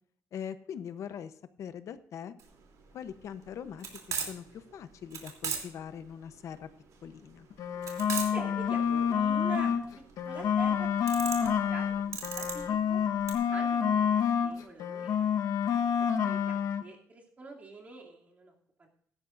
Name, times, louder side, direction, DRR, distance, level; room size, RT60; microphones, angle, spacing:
voice 1, 0.3-1.3 1.6-2.3 2.9-6.7 7.0-7.5, left 8 dB, 65° left, 12 dB, 0.8 m, -42 dB
sound 1, 2.4-13.3, right 7 dB, 80° right, 3.1 m, -39 dB
sound 2, 7.5-9.9 10.2-14.5 14.8-16.8, left 8 dB, 85° left, 1.1 m, -28 dB
voice 2, 8.3-9.7 10.3-13.0 13.5-15.3 16.2-18.5 18.8-18.9, right 3 dB, 30° right, -1 dB, 2.7 m, -45 dB
16.0 x 13.0 x 2.6 m, 0.63 s
wide cardioid pair, 170°, 6 cm